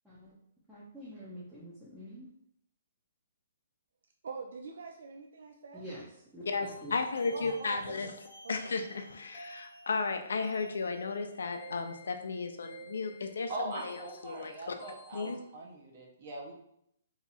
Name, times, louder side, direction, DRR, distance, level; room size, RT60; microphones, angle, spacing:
voice 1, 0.7-2.3 5.7-6.0 6.3-6.9, equal, 5° right, -10 dB, 0.5 m, -46 dB
voice 2, 4.2-5.8 7.3-8.2 8.4-8.7, right 4 dB, 65° right, 3 dB, 0.3 m, -44 dB
voice 3, 6.5-8.1 8.5-14.0 14.2-14.7 15.1-15.4, left 4 dB, 90° left, 6 dB, 0.5 m, -34 dB
sound 1, 6.6-15.3, right 1 dB, 30° left, 0.8 m, -53 dB
voice 4, 13.5-16.5, right 2 dB, 40° right, 0 dB, 0.7 m, -41 dB
2.8 x 2.3 x 4.0 m, 0.75 s
hypercardioid pair, 170°, 0 cm